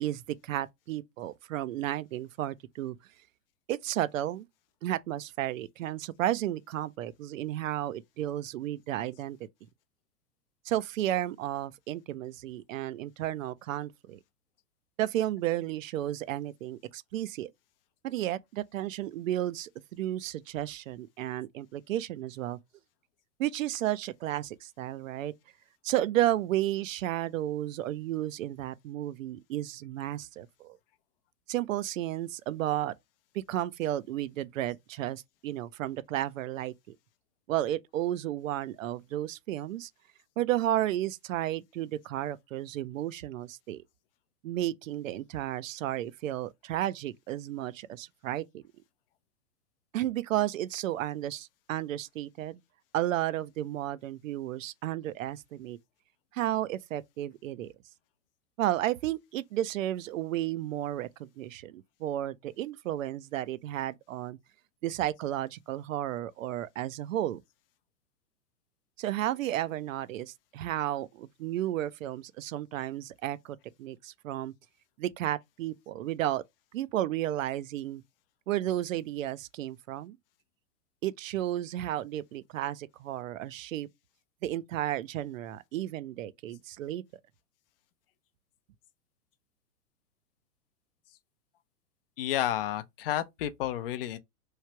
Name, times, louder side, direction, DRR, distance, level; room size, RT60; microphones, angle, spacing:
voice 1, 0.0-3.0 3.7-4.5 4.8-9.4 10.7-14.2 15.0-17.5 18.0-22.6 23.4-25.3 25.8-30.8 31.5-32.9 33.3-37.0 37.5-39.9 40.4-43.8 44.4-48.6 49.9-52.6 52.9-55.8 56.3-57.7 58.6-64.4 64.8-67.4 69.0-74.5 75.0-76.4 76.7-78.0 78.5-80.2 81.0-83.9 84.4-87.0, right 13 dB, 55° right, 0.5 m, -33 dB
voice 2, 92.2-94.2, left 12 dB, 40° left, 0.5 m, -31 dB
3.2 x 2.4 x 4.4 m
hypercardioid pair, 115°, 47 cm